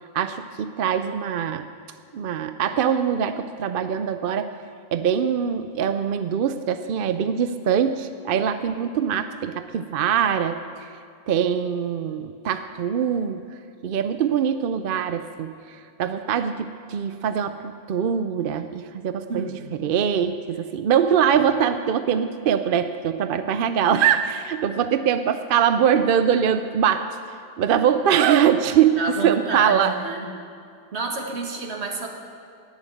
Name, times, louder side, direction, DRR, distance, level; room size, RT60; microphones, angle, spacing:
voice 1, 0.1-1.7 2.1-4.5 4.9-10.9 11.3-13.4 13.8-19.5 19.8-27.1 27.6-29.9, right 8 dB, 60° right, 10 dB, 0.7 m, -23 dB
voice 2, 19.3-19.7 29.0-30.3 30.9-32.1, right 3 dB, 80° right, 2 dB, 1.9 m, -29 dB
19.5 x 7.4 x 7.8 m, 2.3 s
omnidirectional pair, 1.1 m